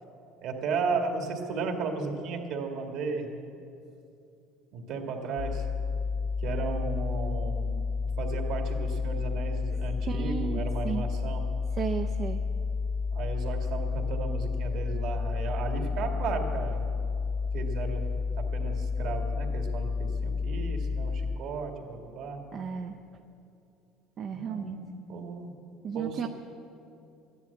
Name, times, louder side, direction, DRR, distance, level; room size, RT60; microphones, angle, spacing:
voice 1, 0.4-3.3 4.7-5.6 6.4-7.7 8.2-11.4 13.1-16.9 17.5-22.5 24.3-25.5 25.9-26.2, right 4 dB, 50° right, 3 dB, 2.0 m, -34 dB
sound 1, 5.4-21.4, left 5 dB, 50° left, 0.4 m, -31 dB
voice 2, 10.1-11.0 11.8-12.4 22.5-23.0 24.2-24.8 25.8-26.3, right 7 dB, 35° right, 4 dB, 0.5 m, -33 dB
14.0 x 11.0 x 8.4 m, 2.6 s
cardioid pair, 170°, 0 cm